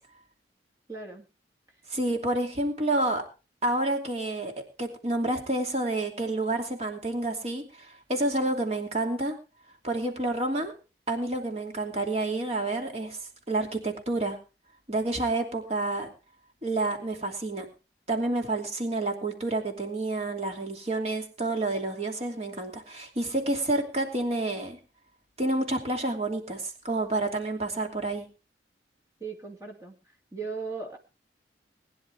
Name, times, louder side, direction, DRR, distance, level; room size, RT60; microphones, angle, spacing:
voice 1, 0.9-1.3 29.2-30.0 30.3-31.0, right 4 dB, 20° right, 0 dB, 2.5 m, -37 dB
voice 2, 1.9-3.2 3.6-4.5 4.8-9.3 9.8-10.7 11.1-13.2 13.5-14.4 14.9-16.1 16.6-17.7 18.1-24.8 25.4-28.2, right 2 dB, 35° right, 3 dB, 2.7 m, -29 dB
20.5 x 10.5 x 3.5 m, 0.32 s
head